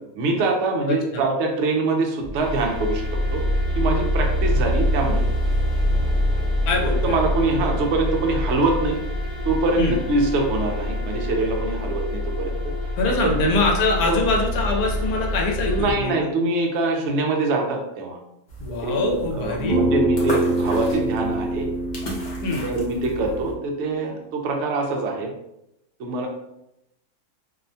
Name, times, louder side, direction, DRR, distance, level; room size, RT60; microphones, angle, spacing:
voice 1, 0.1-3.0 3.3-3.4 3.7-5.3 7.0-9.0 9.4-12.7 13.0-13.5 14.0-14.2 15.6-18.2 18.8-21.7 22.6-25.3 26.0-26.3, right 3 dB, 70° right, 1 dB, 0.7 m, -24 dB
voice 2, 0.9-1.2 6.7-7.2 9.8-9.9 13.0-16.1 18.6-19.8 22.4-22.7, left 3 dB, 80° left, 0 dB, 1.1 m, -23 dB
sound 1, 2.2-15.9, left 1 dB, 40° left, 1.0 m, -25 dB
sound 2, 18.5-23.6, equal, 60° left, 0.4 m, -34 dB
Bass guitar, 19.7-24.0, right 1 dB, 5° left, 0.7 m, -26 dB
2.7 x 2.1 x 2.6 m, 0.85 s
omnidirectional pair, 1.6 m